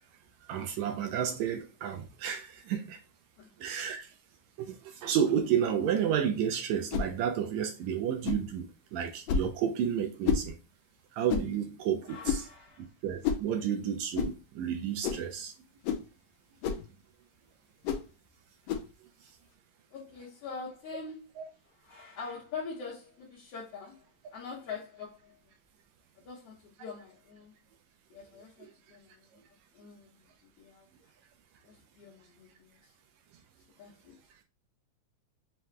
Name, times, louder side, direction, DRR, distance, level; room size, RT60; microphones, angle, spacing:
voice 1, 0.4-3.0 3.6-4.2 4.6-10.6 11.1-12.5 12.8-15.6 19.2-19.3 21.4-21.5 28.6-28.7, right 8 dB, 80° right, 1.7 m, -31 dB
sound 1, 6.9-7.1 8.2-8.5 9.3-9.5 10.2-10.5 11.3-11.5 12.2-12.5 13.2-13.5 14.1-14.3 15.0-15.3 15.8-16.1 16.6-16.9 17.8-18.1 18.7-18.9, left 7 dB, 80° left, 1.6 m, -30 dB
voice 2, 12.0-12.9 19.9-21.3 21.8-24.0 24.3-25.3 26.2-27.6 28.1-29.4 29.7-30.1 30.6-30.9 31.6-32.8 33.8-34.2, left 5 dB, 65° left, 1.8 m, -44 dB
5.7 x 2.2 x 3.1 m
omnidirectional pair, 3.4 m